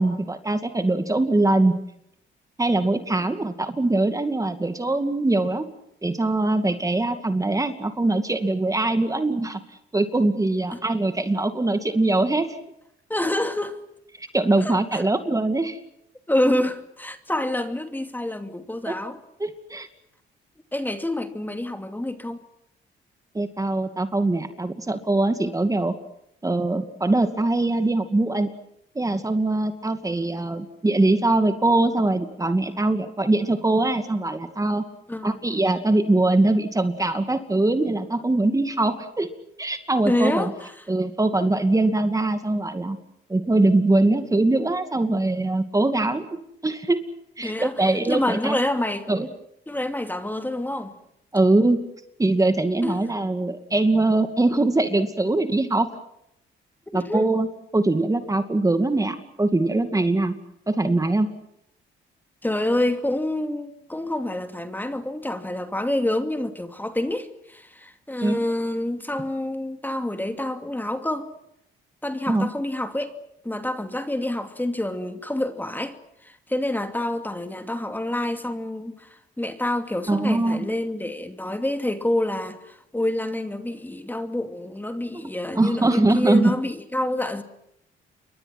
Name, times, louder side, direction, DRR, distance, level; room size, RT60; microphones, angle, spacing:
voice 1, 0.0-1.7 2.6-5.7 6.0-9.6 9.9-12.6 14.2-15.8 18.9-19.0 19.4-19.9 23.3-25.9 26.4-28.5 29.0-34.8 35.2-39.3 39.6-40.5 40.9-43.0 43.3-46.3 46.6-47.0 47.4-48.6 49.1-49.3 51.3-51.8 52.2-55.9 56.9-57.5 57.7-60.4 60.7-61.3 68.2-68.4 72.3-72.5 80.1-80.7 85.1-85.2 85.6-86.5, right 2 dB, 15° right, 2.4 m, -22 dB
voice 2, 13.1-13.8 14.6-15.0 16.3-19.2 20.7-22.4 35.1-35.4 40.1-40.7 47.4-49.1 49.7-51.0 52.8-53.0 56.9-57.3 62.4-71.3 72.0-73.1 73.4-76.0 76.2-87.4, left 1 dB, 10° left, 2.6 m, -27 dB
29.5 x 24.0 x 6.1 m
cardioid pair, 90°, 20 cm